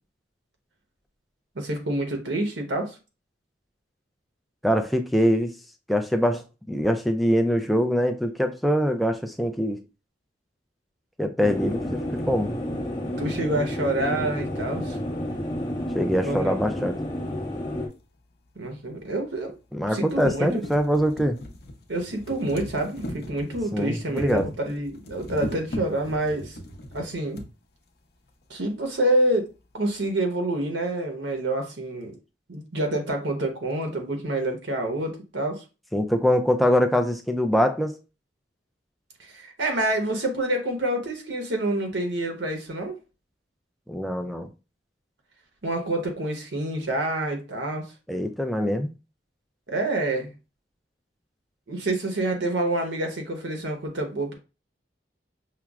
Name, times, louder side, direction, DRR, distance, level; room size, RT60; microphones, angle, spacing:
voice 1, 1.5-2.9 13.2-15.0 16.2-16.5 18.6-19.6 19.9-20.6 21.9-26.6 26.9-27.4 28.5-29.5 29.7-32.2 32.5-35.6 39.2-43.0 45.6-47.9 49.7-50.3 51.7-54.4, right 1 dB, 85° right, 1.0 m, -27 dB
voice 2, 4.6-5.6 5.9-9.8 11.2-12.6 15.9-17.0 19.7-21.4 23.7-24.5 35.9-38.0 43.9-44.5 48.1-48.9, equal, ahead, 0.3 m, -23 dB
sound 1, 11.4-17.9, left 1 dB, 25° left, 1.1 m, -30 dB
sound 2, 17.9-18.0 19.0-19.1 19.5-19.6 19.9-27.5 28.4-28.5 28.7-28.8, equal, 60° left, 0.6 m, -38 dB
5.7 x 2.0 x 2.4 m
head